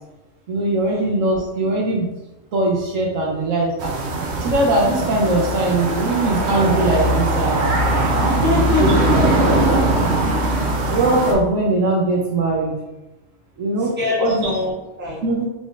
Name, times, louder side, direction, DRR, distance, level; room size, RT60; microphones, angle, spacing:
voice 1, 0.5-2.1 2.5-3.9 4.4-7.7 8.8-9.6 10.1-10.2 10.8-12.7 13.6-13.9 14.2-14.5 15.2-15.5, right 2 dB, 85° right, -1 dB, 1.1 m, -20 dB
sound 1, 3.8-11.3, right 1 dB, 65° right, 0.9 m, -20 dB
voice 2, 8.2-8.9 14.0-15.2, left 2 dB, 10° right, -7 dB, 1.0 m, -23 dB
3.8 x 3.5 x 2.4 m, 1.0 s
omnidirectional pair, 1.3 m